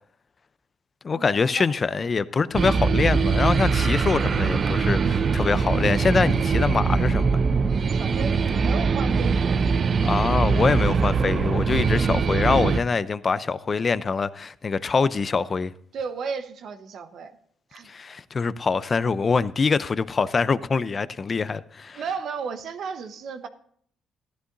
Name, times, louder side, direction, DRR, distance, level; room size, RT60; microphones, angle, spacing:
voice 1, 1.0-7.3 10.0-15.7 17.9-22.0, left 5 dB, 35° left, 0.5 m, -24 dB
sound 1, 2.5-12.8, right 5 dB, 45° right, 0.5 m, -22 dB
voice 2, 7.9-9.6 15.9-17.4 17.7-17.9 21.9-23.5, right 5 dB, 65° right, 1.0 m, -34 dB
15.0 x 11.5 x 2.6 m
cardioid pair, 90°, 0 cm